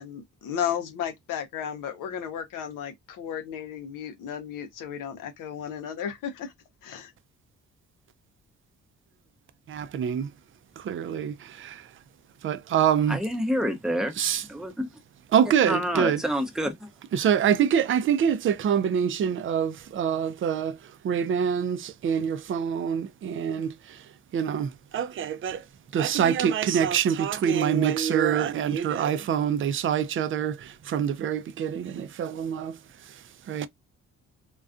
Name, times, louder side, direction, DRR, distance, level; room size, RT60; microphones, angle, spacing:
voice 1, 0.0-6.5 6.8-7.1, left 9 dB, 80° left, 0.7 m, -34 dB
voice 2, 9.7-10.3 10.8-11.8 12.4-13.2 14.2-14.4 15.3-16.2 17.1-20.8 21.0-23.7 24.3-25.6 25.9-32.8 33.5-33.7, right 8 dB, 40° right, 0.4 m, -25 dB
voice 3, 13.1-14.2 14.5-14.9 15.6-16.9, equal, ahead, 0.6 m, -28 dB
2.3 x 2.3 x 2.4 m
cardioid pair, 75°, 31 cm